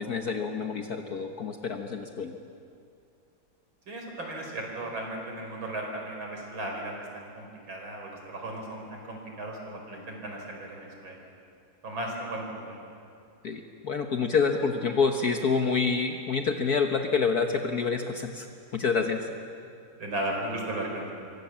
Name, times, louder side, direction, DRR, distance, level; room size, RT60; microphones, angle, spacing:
voice 1, 0.0-2.4 13.4-18.5 18.7-19.2, left 5 dB, 50° left, 5 dB, 1.5 m, -27 dB
voice 2, 3.9-11.2 11.8-12.8 20.0-21.1, right 1 dB, 70° right, 1 dB, 5.5 m, -36 dB
27.5 x 23.5 x 7.4 m, 2.4 s
omnidirectional pair, 2.2 m